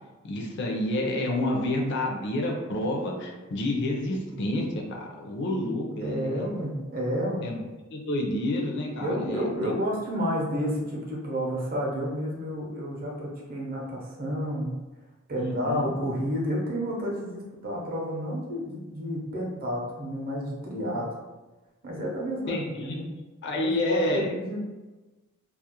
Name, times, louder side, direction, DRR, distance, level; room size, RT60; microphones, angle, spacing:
voice 1, 0.2-6.5 7.4-7.6 7.9-9.7 15.4-15.9 22.5-23.0 23.4-24.3, left 1 dB, 55° left, 0 dB, 0.4 m, -29 dB
voice 2, 6.0-7.4 9.0-14.8 15.3-21.1 21.8-23.1 23.5-24.6, equal, 45° right, -2 dB, 0.6 m, -30 dB
2.3 x 2.0 x 2.8 m, 1.2 s
head